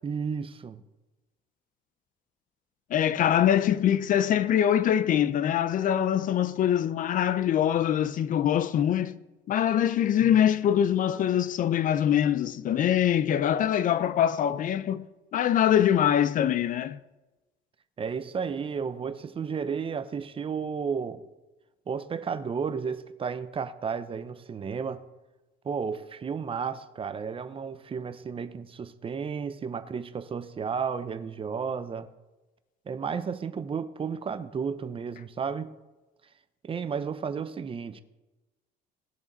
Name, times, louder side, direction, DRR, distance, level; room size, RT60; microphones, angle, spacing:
voice 1, 0.0-0.8 18.0-21.2 21.9-25.0 25.6-32.1 32.9-35.7 36.6-38.0, right 6 dB, 30° right, 0.7 m, -33 dB
voice 2, 2.9-9.2 9.5-15.1 15.3-17.0, left 10 dB, 50° left, 0.5 m, -23 dB
18.5 x 6.9 x 4.0 m
cardioid pair, 110°, 18 cm